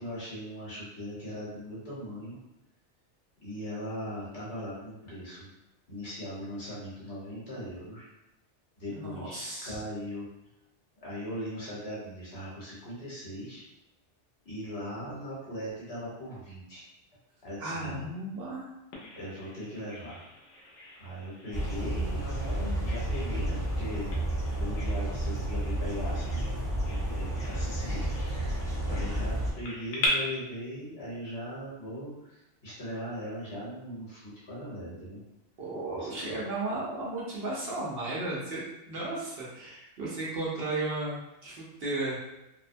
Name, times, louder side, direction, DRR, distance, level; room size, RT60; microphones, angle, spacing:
voice 1, 0.0-2.4 3.4-5.5 5.9-8.1 8.8-10.3 11.0-13.6 14.4-16.8 17.4-18.1 19.1-20.2 21.0-24.1 24.6-26.5 26.8-35.2 35.9-36.4, equal, 60° left, -8 dB, 1.3 m, -39 dB
voice 2, 8.9-9.8 17.6-18.7 29.1-29.2 35.6-38.6 38.9-42.2, right 2 dB, 60° right, -6 dB, 0.8 m, -34 dB
Bird vocalization bird call bird song, 18.9-30.1, left 3 dB, 85° left, 1.0 m, -42 dB
sound 1, 21.5-29.5, right 1 dB, 5° left, 0.3 m, -31 dB
2.7 x 2.1 x 2.5 m, 0.90 s
omnidirectional pair, 1.2 m